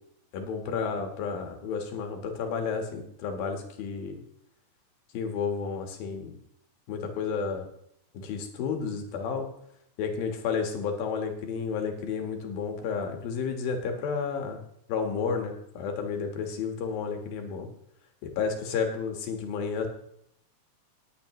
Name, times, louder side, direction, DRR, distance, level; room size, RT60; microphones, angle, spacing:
voice 1, 0.3-4.2 5.1-6.4 6.9-7.7 8.1-9.5 10.0-14.6 14.9-17.7 18.2-19.9, left 5 dB, 90° left, 4 dB, 3.4 m, -31 dB
18.5 x 9.2 x 3.2 m, 0.74 s
omnidirectional pair, 4.1 m